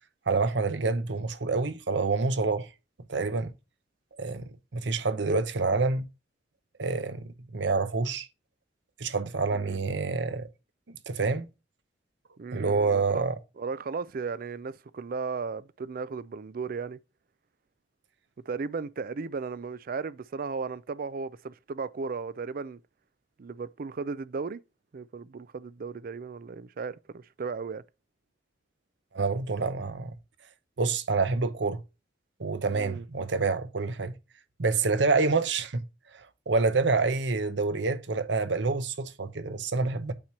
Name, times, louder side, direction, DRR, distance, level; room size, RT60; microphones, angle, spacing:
voice 1, 0.3-2.7 3.1-3.5 4.2-6.1 6.8-8.3 9.0-10.5 11.1-11.5 12.5-13.3 29.1-30.1 30.8-31.8 32.4-34.1 34.6-35.8 36.1-40.1, right 3 dB, 70° right, 0.8 m, -27 dB
voice 2, 9.5-9.9 12.4-17.0 18.5-22.8 23.4-24.6 24.9-27.8 32.7-33.1, right 4 dB, 50° right, 0.4 m, -35 dB
8.7 x 3.0 x 6.1 m
head